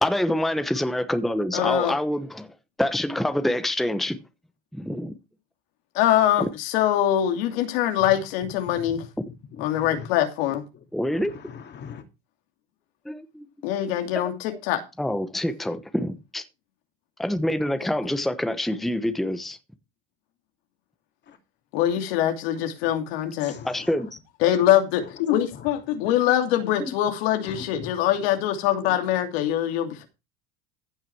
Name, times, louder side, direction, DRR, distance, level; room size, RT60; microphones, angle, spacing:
voice 1, 0.0-2.5 2.8-4.2 4.7-5.1 10.9-11.3 13.0-13.5 14.1-14.2 15.0-16.4 17.2-19.6 23.6-24.1, left 1 dB, ahead, 1.0 m, -26 dB
voice 2, 1.5-1.9 5.9-9.0 9.6-10.6 13.6-14.8 21.7-23.5 24.4-30.1, left 11 dB, 80° left, 2.7 m, -23 dB
voice 3, 8.7-9.0 9.5-10.1 10.5-12.0 21.3-21.4 22.8-22.9 23.4-24.1 25.0-25.2 25.5-26.0 27.4-28.0 29.9-30.0, left 7 dB, 35° left, 2.6 m, -42 dB
15.5 x 5.9 x 4.6 m
supercardioid pair, 125°, 30 cm